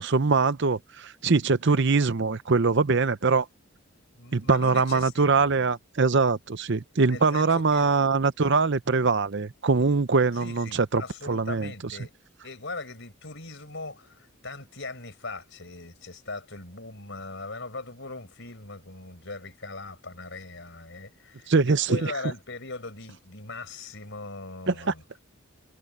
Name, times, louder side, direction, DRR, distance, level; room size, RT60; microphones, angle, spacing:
voice 1, 0.0-3.5 4.3-11.0 11.3-11.7 21.5-22.0 24.7-24.8, right 4 dB, 50° right, 0.7 m, -23 dB
voice 2, 4.1-5.5 7.1-7.9 10.4-12.1 12.4-25.0, left 3 dB, 55° left, 5.8 m, -40 dB
head